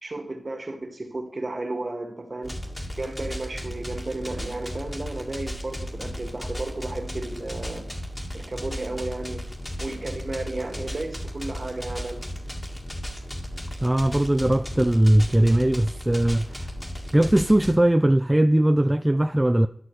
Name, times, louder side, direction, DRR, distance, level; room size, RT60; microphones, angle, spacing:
voice 1, 0.0-2.6 3.0-7.9 8.3-9.5 9.8-12.2, right 2 dB, 45° right, 1.7 m, -33 dB
sound 1, 2.4-17.7, equal, 20° left, 1.6 m, -35 dB
voice 2, 13.8-16.7 17.1-19.7, right 1 dB, 15° right, 0.3 m, -20 dB
13.5 x 6.2 x 3.2 m
cardioid pair, 60°, 0 cm